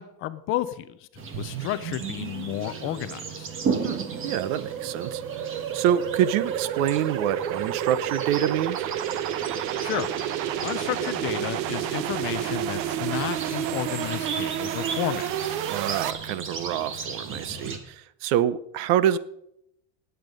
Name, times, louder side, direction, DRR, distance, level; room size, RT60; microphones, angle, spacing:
voice 1, 0.0-3.5 9.8-10.1 10.6-15.6, left 14 dB, 30° left, 13 dB, 0.4 m, -32 dB
sound 1, 1.1-17.8, right 5 dB, 25° right, 1.5 m, -36 dB
sound 2, 1.3-16.1, right 11 dB, 90° right, 1.1 m, -31 dB
voice 2, 3.8-8.9 15.6-19.2, right 10 dB, 55° right, 17 dB, 0.8 m, -26 dB
18.5 x 8.1 x 5.2 m, 0.77 s
supercardioid pair, 160°, 49 cm